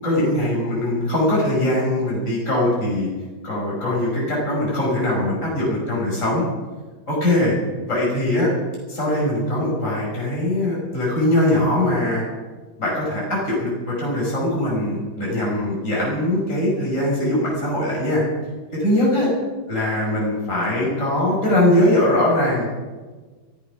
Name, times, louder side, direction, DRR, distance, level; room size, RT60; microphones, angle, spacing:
voice 1, 0.0-3.1 3.4-6.4 7.1-7.6 7.9-8.5 8.9-12.2 12.8-18.2 18.8-19.3 19.7-22.7, left 1 dB, 35° left, -5 dB, 5.8 m, -21 dB
15.5 x 14.5 x 6.0 m, 1.3 s
omnidirectional pair, 2.2 m